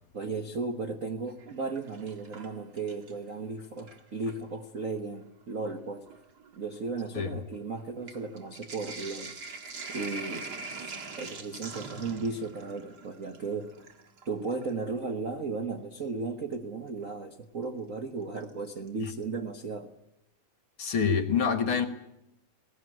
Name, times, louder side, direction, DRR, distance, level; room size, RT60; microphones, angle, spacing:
voice 1, 0.1-6.0 6.5-9.4 9.9-13.7 14.3-19.9, right 4 dB, 75° right, 0.7 m, -35 dB
Sink (filling or washing), 1.3-3.3 3.6-4.5 5.3-5.4 5.6-14.8 16.5-16.6 18.4-18.9 19.2-19.3 19.5-19.6, right 3 dB, 40° right, 1.9 m, -44 dB
voice 2, 20.8-21.9, left 6 dB, 50° left, 1.8 m, -26 dB
21.0 x 18.0 x 9.4 m
omnidirectional pair, 3.6 m